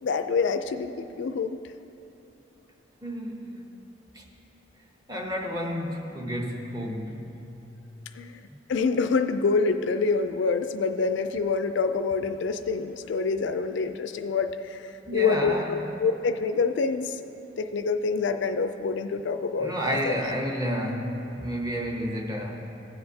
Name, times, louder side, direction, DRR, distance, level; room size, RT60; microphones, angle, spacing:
voice 1, 0.0-1.6 8.2-8.4 8.7-14.8 15.1-17.2 17.6-19.7 20.1-20.2, left 4 dB, 70° left, 8 dB, 0.4 m, -26 dB
voice 2, 3.0-3.7 4.1-4.2 5.1-7.5 15.1-15.9 19.6-22.6, equal, 20° right, 1 dB, 0.8 m, -31 dB
16.0 x 7.8 x 2.8 m, 2.9 s
head